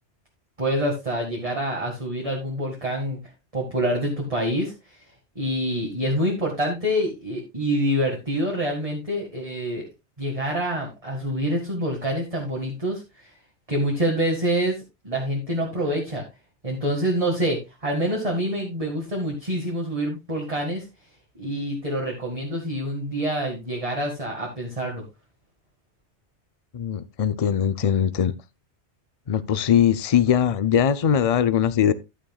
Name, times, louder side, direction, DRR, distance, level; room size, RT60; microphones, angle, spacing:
voice 1, 0.6-3.2 3.5-4.7 5.4-9.8 10.2-13.3 13.7-14.8 15.0-16.2 16.6-20.8 21.4-25.0, equal, 30° right, 2.1 m, -26 dB
voice 2, 26.7-28.3 29.3-31.9, left 8 dB, 40° left, 0.6 m, -21 dB
11.5 x 9.2 x 2.4 m
omnidirectional pair, 1.2 m